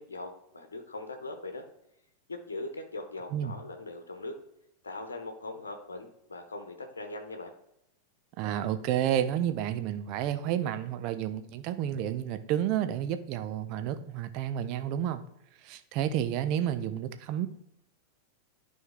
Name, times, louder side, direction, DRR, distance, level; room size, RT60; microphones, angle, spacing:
voice 1, 0.0-1.7 2.3-4.4 4.8-7.5, left 2 dB, 70° left, 6 dB, 1.0 m, -40 dB
voice 2, 8.4-15.2 15.6-17.5, right 10 dB, 40° right, 10 dB, 0.7 m, -30 dB
11.0 x 4.6 x 3.5 m, 0.82 s
figure-of-eight pair, 90°, 0 cm